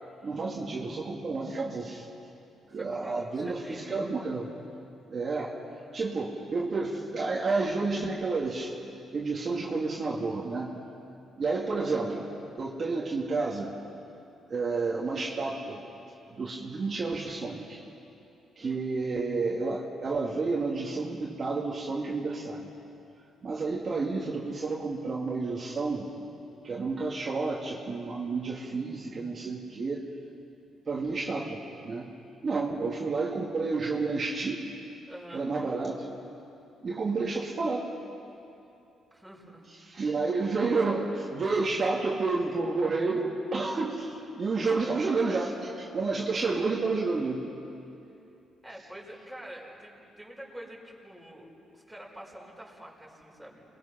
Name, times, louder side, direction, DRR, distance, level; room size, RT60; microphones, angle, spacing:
voice 1, 0.2-2.1 2.7-4.5 5.1-5.5 5.9-8.7 9.1-10.7 11.4-12.3 12.6-13.7 14.5-15.8 16.3-17.8 18.6-22.7 23.4-26.1 26.6-30.0 30.9-32.1 32.4-34.6 35.3-36.1 36.8-37.9 39.8-47.4, right 3 dB, 40° right, -3 dB, 2.5 m, -30 dB
voice 2, 2.7-4.1 18.6-18.9 35.1-35.5 39.1-39.7 48.6-53.6, right 1 dB, ahead, -3 dB, 5.9 m, -46 dB
28.5 x 22.0 x 6.0 m, 2.7 s
cardioid pair, 90°, 0 cm